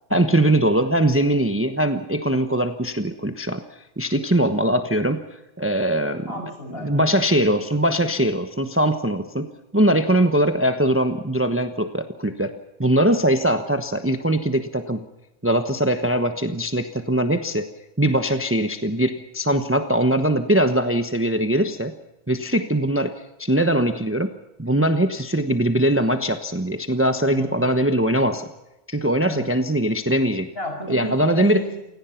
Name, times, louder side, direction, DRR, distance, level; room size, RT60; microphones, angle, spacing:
voice 1, 0.1-3.6 4.0-6.3 6.8-9.5 9.7-12.5 12.8-15.1 15.4-17.7 18.0-21.9 22.3-23.1 23.4-24.3 24.6-28.5 28.9-30.5 30.9-31.6, right 1 dB, 10° right, 8 dB, 1.1 m, -21 dB
voice 2, 6.3-7.2 8.0-8.1 27.3-27.7 29.3-29.5 30.6-31.8, equal, 50° left, 3 dB, 7.1 m, -33 dB
28.5 x 18.0 x 5.9 m, 0.94 s
omnidirectional pair, 1.3 m